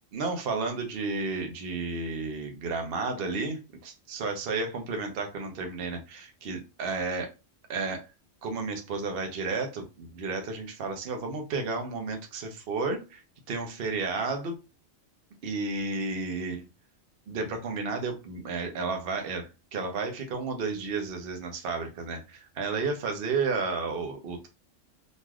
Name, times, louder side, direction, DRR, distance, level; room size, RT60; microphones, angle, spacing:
voice 1, 0.1-7.3 7.7-8.1 8.4-13.2 13.5-14.6 15.4-16.6 17.3-24.5, right 4 dB, 55° right, 4 dB, 0.8 m, -32 dB
3.1 x 2.5 x 2.3 m, 0.28 s
omnidirectional pair, 1.3 m